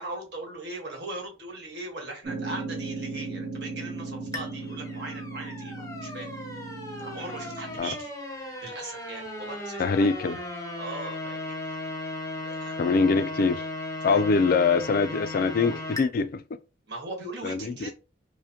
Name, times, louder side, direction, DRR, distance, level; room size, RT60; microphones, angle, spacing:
voice 1, 0.0-6.3 7.0-8.1 8.6-10.1 10.7-11.8 12.4-13.0 14.0-14.2 16.9-17.9, right 2 dB, 60° right, 1.4 m, -39 dB
sound 1, 2.2-7.8, right 3 dB, 35° right, 1.5 m, -37 dB
sound 2, 4.3-16.0, left 2 dB, 15° left, 0.7 m, -36 dB
voice 2, 9.8-10.4 12.8-13.6 14.0-16.4 17.4-17.9, left 4 dB, 50° left, 0.3 m, -23 dB
4.9 x 2.1 x 2.8 m
head